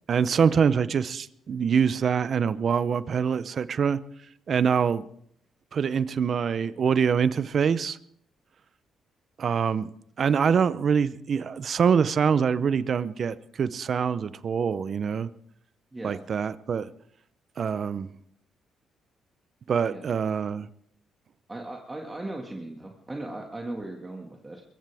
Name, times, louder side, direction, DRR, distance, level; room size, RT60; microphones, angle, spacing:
voice 1, 0.1-4.0 4.5-5.0 5.7-8.0 9.4-9.9 10.2-15.3 16.0-16.9 17.6-18.1 19.7-20.7, right 6 dB, 50° right, 16 dB, 0.7 m, -24 dB
voice 2, 15.9-16.2 19.9-20.1 21.5-24.6, right 2 dB, 20° right, 1 dB, 1.9 m, -37 dB
22.0 x 15.5 x 3.5 m, 0.69 s
cardioid pair, 90°, 0 cm